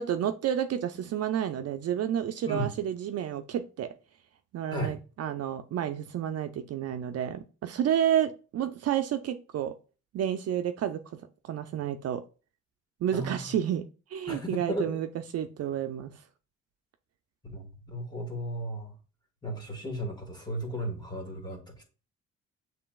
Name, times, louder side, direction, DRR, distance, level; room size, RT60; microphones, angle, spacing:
voice 1, 0.0-3.9 4.5-9.7 10.1-12.2 13.0-13.8 14.1-15.1 15.3-16.1, right 10 dB, 55° right, 8 dB, 0.4 m, -30 dB
voice 2, 13.1-13.5 14.3-14.9 17.4-18.9 19.4-21.8, equal, 15° left, 2 dB, 1.5 m, -35 dB
6.7 x 3.2 x 2.3 m, 0.34 s
cardioid pair, 90°, 30 cm